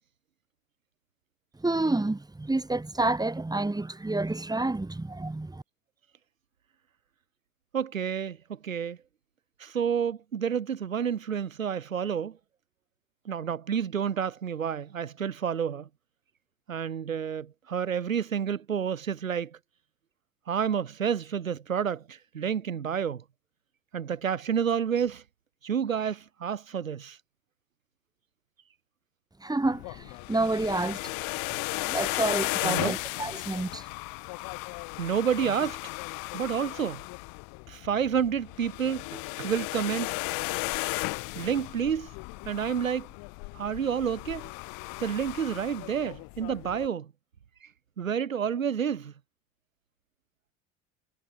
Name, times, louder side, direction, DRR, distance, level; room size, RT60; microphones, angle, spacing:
voice 1, 1.6-5.6 29.4-31.0 31.8-33.9, right 2 dB, 10° right, 7.6 m, -29 dB
voice 2, 7.7-9.0 9.6-12.4 13.3-15.9 16.7-19.6 20.5-23.2 23.9-25.2 25.6-27.2 32.6-33.0 35.0-35.9 36.3-37.0 37.7-40.1 41.3-42.1 42.5-43.1 43.5-44.5 45.0-47.1 47.6-47.7 48.0-49.1, right 7 dB, 85° right, 4.1 m, -29 dB
sound 1, 29.6-46.9, left 31 dB, 60° left, 4.0 m, -35 dB
hypercardioid pair, 75°, 39 cm